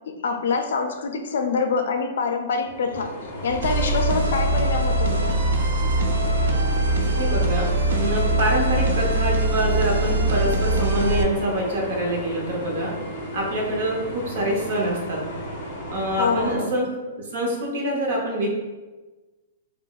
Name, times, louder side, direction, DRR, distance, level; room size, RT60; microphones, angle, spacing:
voice 1, 0.1-3.1 3.4-5.4 16.2-16.8, left 4 dB, 70° left, 5 dB, 0.4 m, -25 dB
sound 1, 2.7-16.6, equal, 35° left, 0.7 m, -34 dB
sound 2, 3.6-11.2, right 1 dB, 90° right, 0.4 m, -22 dB
voice 2, 7.0-12.9 13.3-15.2 15.9-16.9 17.2-18.5, right 1 dB, 45° right, -1 dB, 0.7 m, -25 dB
3.7 x 2.1 x 2.3 m, 1.2 s
hypercardioid pair, 175°, 0 cm